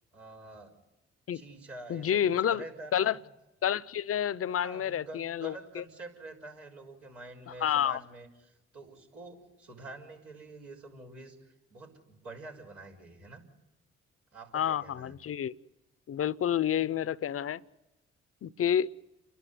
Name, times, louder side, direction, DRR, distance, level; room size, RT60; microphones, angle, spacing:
voice 1, 0.1-0.7 1.3-2.2 2.5-3.2 4.5-13.4 14.3-15.2, right 2 dB, 85° right, 4.9 m, -47 dB
voice 2, 1.9-2.6 2.9-3.2 3.6-5.8 7.5-8.0 14.5-15.5 16.1-17.6 18.4-18.9, left 9 dB, 50° left, 0.7 m, -29 dB
29.5 x 12.0 x 9.4 m
hypercardioid pair, 45°, 30 cm